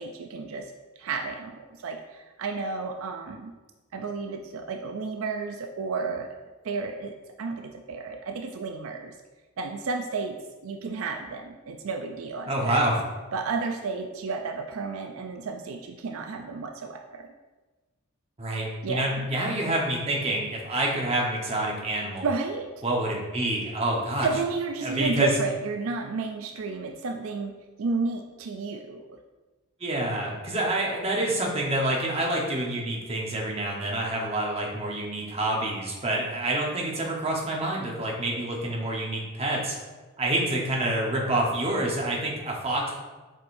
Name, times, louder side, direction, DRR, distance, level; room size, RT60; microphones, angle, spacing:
voice 1, 0.0-3.5 3.9-6.3 6.6-9.2 9.6-10.4 10.6-12.8 13.3-17.3 18.8-19.3 22.2-22.7 24.2-27.5 27.8-29.2, right 4 dB, 70° right, 4 dB, 0.4 m, -32 dB
voice 2, 12.5-13.0 18.4-22.3 22.8-24.3 24.8-25.3 29.8-39.7 40.2-42.9, right 1 dB, 25° right, -2 dB, 1.0 m, -27 dB
7.5 x 5.0 x 2.6 m, 1.2 s
head